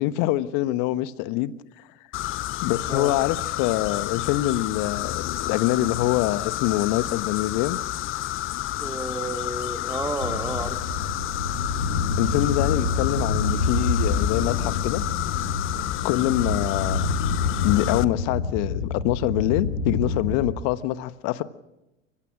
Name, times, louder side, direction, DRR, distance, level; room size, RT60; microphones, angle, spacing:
voice 1, 0.0-1.5 2.6-7.8 12.2-15.0 16.0-17.1 17.6-21.4, left 15 dB, 50° left, 1.3 m, -25 dB
sound 1, 2.1-18.0, left 14 dB, 35° left, 0.7 m, -30 dB
voice 2, 8.8-10.8, right 2 dB, 10° right, 2.5 m, -31 dB
sound 2, 10.2-20.6, left 3 dB, 85° left, 4.8 m, -27 dB
29.5 x 16.0 x 6.1 m
figure-of-eight pair, 75°, 36 cm